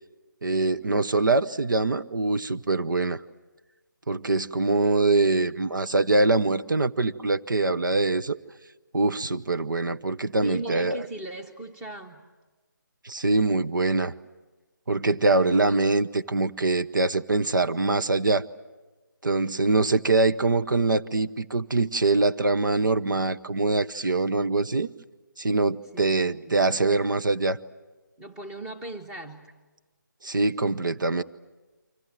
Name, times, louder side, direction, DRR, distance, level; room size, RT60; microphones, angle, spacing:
voice 1, 0.4-3.2 4.1-8.4 8.9-11.0 13.0-14.1 14.9-18.4 19.2-24.9 25.4-27.6 30.2-31.2, right 3 dB, 75° right, 11 dB, 0.9 m, -23 dB
voice 2, 10.4-12.2 25.9-26.7 28.2-29.5, right 1 dB, 5° right, 4 dB, 1.2 m, -39 dB
29.5 x 25.0 x 7.6 m, 1.2 s
figure-of-eight pair, 160°, 11 cm